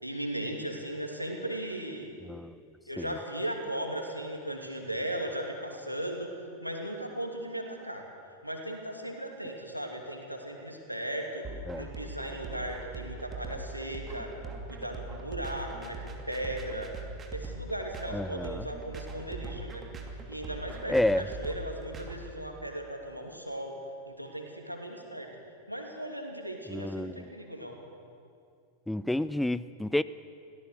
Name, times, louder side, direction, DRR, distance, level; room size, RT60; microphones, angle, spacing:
voice 1, 0.0-2.1 2.9-6.3 6.6-8.1 8.4-11.5 11.7-14.3 14.7-16.9 17.3-19.8 20.3-23.8 24.1-25.3 25.7-27.8, right 1 dB, 90° left, 2 dB, 2.7 m, -37 dB
sound 1, 11.4-22.1, right 3 dB, 20° right, 2.7 m, -41 dB
voice 2, 18.1-18.6 20.9-21.2 26.7-27.1 28.9-30.0, left 1 dB, 5° left, 16 dB, 0.4 m, -29 dB
24.0 x 17.0 x 6.7 m, 2.4 s
figure-of-eight pair, 90°, 0 cm